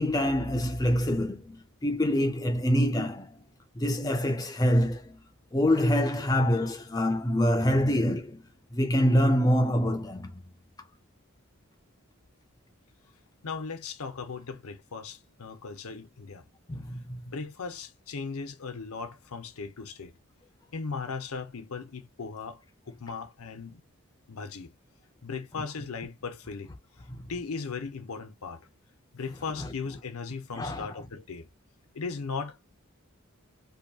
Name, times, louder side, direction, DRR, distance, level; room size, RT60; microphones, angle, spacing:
voice 1, 0.0-3.4 3.8-5.2 5.5-8.4 8.7-10.3 16.7-17.2 27.1-27.2 29.6-29.7 30.6-30.9, equal, 15° left, 0.4 m, -25 dB
voice 2, 13.4-16.4 17.2-20.1 20.7-23.8 24.3-24.7 25.2-26.7 27.3-28.6 29.1-31.5 31.9-32.8, left 5 dB, 85° left, 0.7 m, -37 dB
2.7 x 2.2 x 2.7 m
head